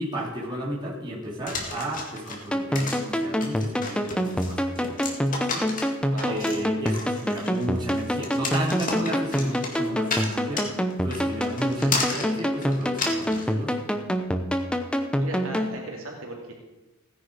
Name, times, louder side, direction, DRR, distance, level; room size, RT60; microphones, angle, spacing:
voice 1, 0.0-13.8, right 1 dB, 20° right, -5 dB, 3.5 m, -34 dB
sound 1, 1.5-13.5, left 3 dB, 40° left, 2.1 m, -33 dB
sound 2, 2.5-15.7, equal, 5° left, 0.8 m, -26 dB
voice 2, 6.1-6.4 15.2-16.5, right 2 dB, 75° right, -1 dB, 2.8 m, -36 dB
16.5 x 10.0 x 5.0 m, 1.1 s
head